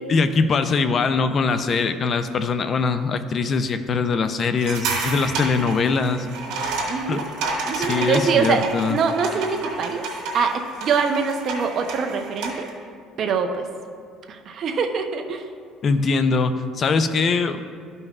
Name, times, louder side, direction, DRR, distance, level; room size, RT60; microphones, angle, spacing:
voice 1, 0.1-6.3 7.1-7.2 7.7-9.0 15.8-17.7, left 4 dB, 35° left, 10 dB, 0.4 m, -22 dB
sound 1, 4.6-12.7, right 3 dB, 90° right, 1.9 m, -30 dB
voice 2, 6.9-7.2 7.6-10.0 10.3-12.7 13.2-13.7 14.3-15.5, right 5 dB, 45° right, 5 dB, 0.6 m, -24 dB
13.0 x 5.4 x 2.4 m, 2.2 s
cardioid pair, 145°, 0 cm